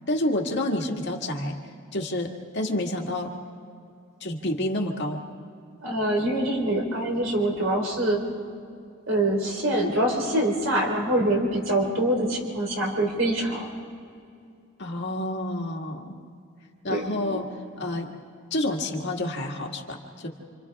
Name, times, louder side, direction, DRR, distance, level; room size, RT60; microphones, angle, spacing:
voice 1, 0.1-1.6 1.9-3.3 4.2-5.2 14.8-16.2 16.8-17.5 17.8-18.1 18.5-20.3, left 1 dB, 55° left, 0 dB, 2.0 m, -29 dB
voice 2, 5.8-8.2 9.1-13.7 16.9-17.4, right 1 dB, 60° right, 0 dB, 4.1 m, -25 dB
30.0 x 26.5 x 3.6 m, 2.4 s
head